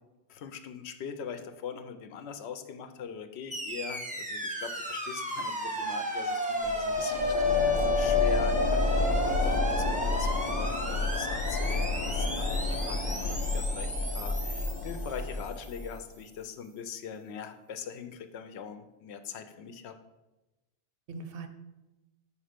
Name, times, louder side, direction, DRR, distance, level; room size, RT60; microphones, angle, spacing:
voice 1, 0.3-20.0, left 7 dB, 80° left, 8 dB, 0.8 m, -42 dB
sound 1, 3.5-15.7, left 2 dB, 10° right, 0.6 m, -32 dB
sound 2, 6.6-16.0, left 3 dB, 55° left, 0.5 m, -30 dB
voice 2, 7.0-8.3 21.1-21.5, right 3 dB, 65° right, 7 dB, 0.7 m, -43 dB
5.0 x 4.3 x 5.0 m, 1.0 s
omnidirectional pair, 1.1 m